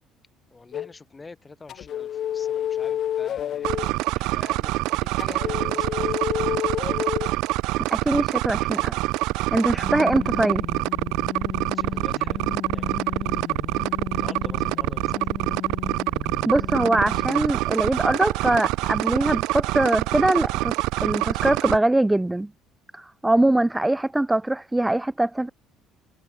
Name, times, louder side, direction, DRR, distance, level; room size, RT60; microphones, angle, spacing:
voice 1, 0.5-6.5 11.7-12.4 12.7-13.4 13.8-15.5, left 3 dB, 15° left, 6.9 m, -46 dB
sound 1, 0.7-0.9 1.7-3.9 5.2-7.3 9.7-17.5, left 10 dB, 40° left, 5.3 m, -32 dB
sound 2, 3.6-21.8, right 20 dB, 75° right, 0.5 m, -25 dB
voice 2, 7.8-8.9 9.5-10.6 16.5-20.8 21.0-22.5 22.9-25.5, right 1 dB, 5° right, 0.5 m, -22 dB
cardioid pair, 160°, 0 cm